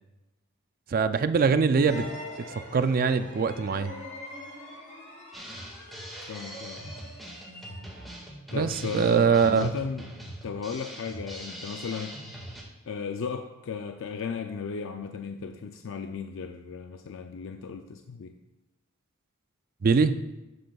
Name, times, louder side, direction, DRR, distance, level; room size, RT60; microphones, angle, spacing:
voice 1, 0.9-2.1 2.5-3.9 8.5-9.7 19.8-20.2, right 5 dB, 45° right, 11 dB, 0.4 m, -23 dB
sound 1, 1.7-8.2, left 1 dB, 40° left, 2.7 m, -43 dB
Drum kit, 5.3-12.6, equal, ahead, 1.8 m, -42 dB
voice 2, 6.3-6.8 8.5-10.0 10.4-12.2 12.9-18.4, left 6 dB, 65° left, 5 dB, 0.4 m, -35 dB
11.0 x 7.7 x 2.3 m, 1.0 s
head